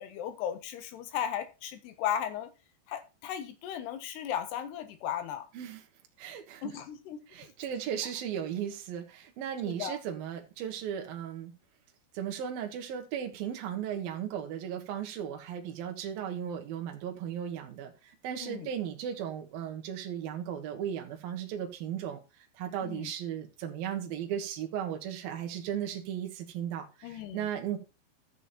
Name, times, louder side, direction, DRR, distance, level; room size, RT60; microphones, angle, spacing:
voice 1, 0.0-2.5 2.9-5.5 6.6-7.2 9.7-10.0 18.4-18.7 22.8-23.1 27.0-27.5, left 9 dB, 80° left, 3.4 m, -36 dB
voice 2, 6.2-6.8 7.3-11.5 12.1-22.2 22.5-27.8, right 9 dB, 65° right, 3.1 m, -36 dB
13.0 x 7.2 x 4.3 m
omnidirectional pair, 4.8 m